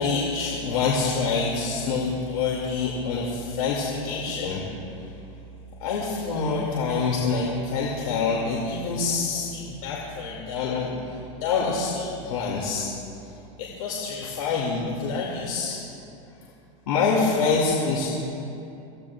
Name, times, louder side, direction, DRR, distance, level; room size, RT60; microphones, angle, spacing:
voice 1, 0.0-5.1 5.8-12.9 13.2-15.8 16.9-18.1, left 4 dB, 80° left, -3 dB, 2.4 m, -26 dB
25.0 x 16.0 x 2.4 m, 2.7 s
supercardioid pair, 130°, 18 cm